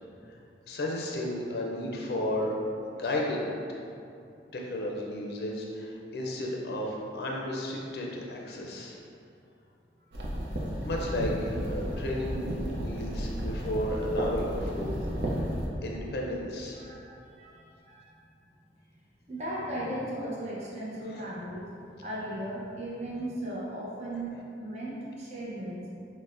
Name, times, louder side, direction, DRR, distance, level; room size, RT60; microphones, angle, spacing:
voice 1, 0.7-2.6 2.9-3.4 4.5-9.0 10.8-15.1 15.8-16.8 21.1-21.2, left 1 dB, 65° left, -2 dB, 0.4 m, -33 dB
sound 1, 10.1-15.7, equal, 80° right, 0.5 m, -33 dB
voice 2, 16.7-18.3 19.3-21.7 22.0-24.3 24.6-25.9, right 1 dB, 40° right, -6 dB, 0.6 m, -37 dB
5.9 x 2.1 x 2.5 m, 2.6 s
head